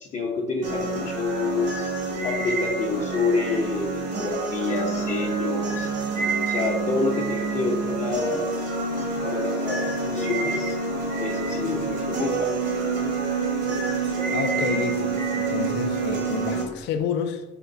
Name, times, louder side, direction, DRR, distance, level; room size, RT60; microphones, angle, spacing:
voice 1, 0.0-1.9 2.2-5.9 6.5-8.6 9.2-10.8 11.2-12.5, left 3 dB, 40° left, 0 dB, 0.8 m, -28 dB
sound 1, 0.6-16.6, right 3 dB, 65° right, 1.2 m, -27 dB
voice 2, 14.3-17.4, left 7 dB, 60° left, 8 dB, 0.5 m, -29 dB
4.3 x 2.3 x 3.8 m, 1.1 s
supercardioid pair, 95°, 19 cm